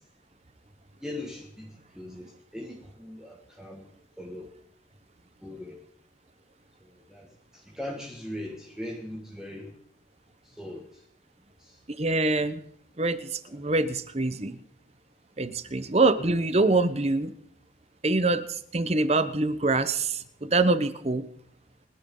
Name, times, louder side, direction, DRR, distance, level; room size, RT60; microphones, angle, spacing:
voice 1, 1.0-3.9 4.2-4.5 5.4-5.8 6.8-9.7 10.6-10.9 11.6-11.8 15.7-15.8, left 1 dB, 5° right, -2 dB, 1.8 m, -40 dB
voice 2, 12.0-12.6 13.0-14.6 15.4-17.3 18.0-18.4 18.7-21.2, right 2 dB, 35° right, 12 dB, 0.9 m, -25 dB
28.5 x 11.0 x 3.9 m, 0.68 s
head